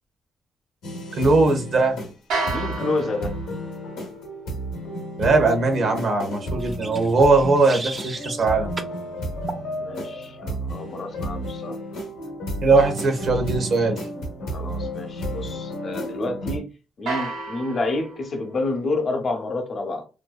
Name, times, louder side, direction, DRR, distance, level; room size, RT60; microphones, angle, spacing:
sound 1, 0.8-16.6, equal, 90° left, 0.7 m, -32 dB
voice 1, 1.1-2.0 5.2-8.7 12.6-14.1, right 3 dB, 60° right, 0.8 m, -20 dB
sound 2, 2.3-8.4 17.1-19.0, right 3 dB, 85° right, 0.9 m, -35 dB
voice 2, 2.5-3.4 9.8-11.8 14.5-16.7 17.0-20.0, left 2 dB, 50° left, 0.7 m, -29 dB
sound 3, 6.6-8.5 8.8-9.0 9.5-9.7, right 3 dB, 30° right, 0.5 m, -35 dB
2.6 x 2.2 x 2.2 m
supercardioid pair, 70°, 0 cm